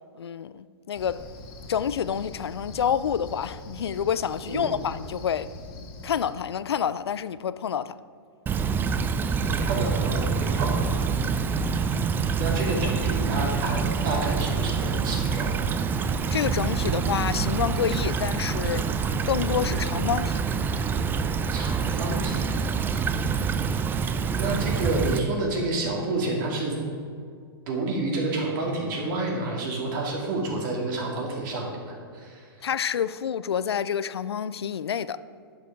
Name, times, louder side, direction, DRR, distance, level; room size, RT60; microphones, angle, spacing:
voice 1, 0.1-1.2 1.7-5.5 6.0-8.0 16.3-18.9 19.3-20.4 32.6-35.2, left 8 dB, 85° left, 0.4 m, -28 dB
Cricket, 0.9-6.3, left 2 dB, 35° left, 1.8 m, -42 dB
Stream / Trickle dribble, 8.5-25.2, right 5 dB, 15° right, 0.4 m, -26 dB
voice 2, 9.4-10.9 12.4-15.7 21.5-22.4 24.4-26.8 27.7-32.7, right 2 dB, 55° right, 2.6 m, -29 dB
10.0 x 6.6 x 4.8 m
hypercardioid pair, 115°, 13 cm